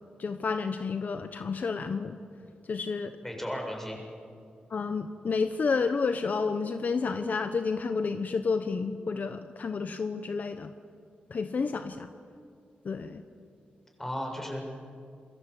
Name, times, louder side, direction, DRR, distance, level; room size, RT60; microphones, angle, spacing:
voice 1, 0.2-2.2 2.7-3.1 4.7-10.7 11.3-12.1 12.8-13.2, left 4 dB, 55° left, 9 dB, 1.1 m, -30 dB
voice 2, 3.2-4.0 14.0-14.7, equal, 10° left, 1 dB, 7.0 m, -35 dB
27.5 x 21.5 x 8.5 m, 2.4 s
cardioid pair, 85°, 3 cm